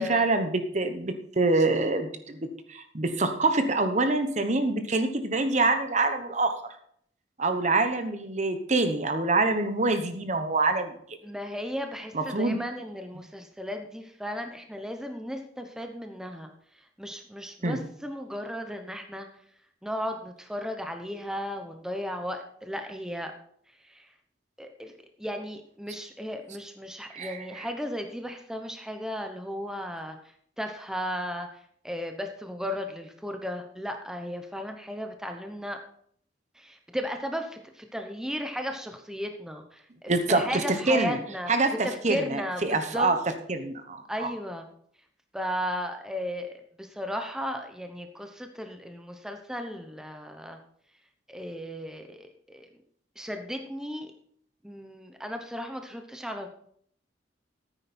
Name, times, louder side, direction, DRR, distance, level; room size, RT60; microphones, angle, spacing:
voice 1, 0.0-6.6 7.4-10.9 12.1-12.6 17.6-17.8 27.1-27.6 40.1-40.6 40.9-41.2 41.5-43.2 43.5-44.3, right 3 dB, 40° right, 8 dB, 1.0 m, -26 dB
voice 2, 11.2-16.5 16.8-19.3 19.8-23.3 23.8-24.1 24.6-30.2 30.6-35.8 36.5-41.5 41.8-43.1 44.1-44.7 45.3-50.6 51.3-52.7 53.2-54.1 54.6-56.5, equal, 5° right, 5 dB, 0.9 m, -35 dB
14.0 x 9.0 x 4.3 m, 0.65 s
head